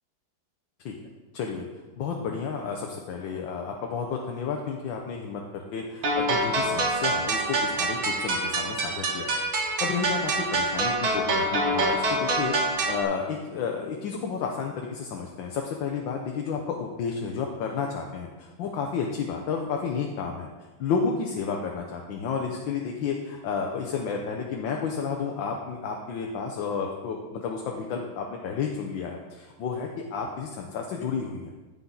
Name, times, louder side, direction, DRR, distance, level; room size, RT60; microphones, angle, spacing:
voice 1, 1.3-1.6 2.0-20.5 20.8-31.5, left 5 dB, 75° left, 1 dB, 1.6 m, -31 dB
sound 1, 6.0-13.0, right 2 dB, 85° right, 2.3 m, -26 dB
15.0 x 5.7 x 3.9 m, 1.3 s
omnidirectional pair, 2.1 m